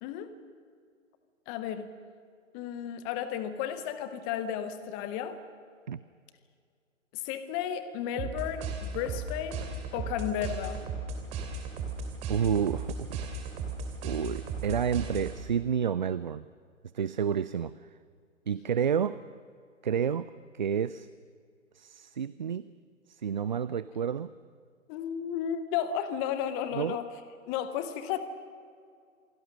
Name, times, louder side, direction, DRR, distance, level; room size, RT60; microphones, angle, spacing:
voice 1, 0.0-0.3 1.5-1.9 2.5-5.4 7.1-10.8 24.9-27.1 27.5-28.2, left 9 dB, 10° left, 12 dB, 0.6 m, -33 dB
sound 1, 8.2-15.6, right 4 dB, 15° right, 2.9 m, -36 dB
voice 2, 12.3-13.3 14.0-16.4 16.9-17.7 18.5-19.2 19.8-21.1 21.7-22.7 23.1-24.3 26.7-27.0, right 8 dB, 35° right, 16 dB, 0.5 m, -30 dB
28.0 x 21.5 x 6.3 m, 2.2 s
figure-of-eight pair, 135°, 39 cm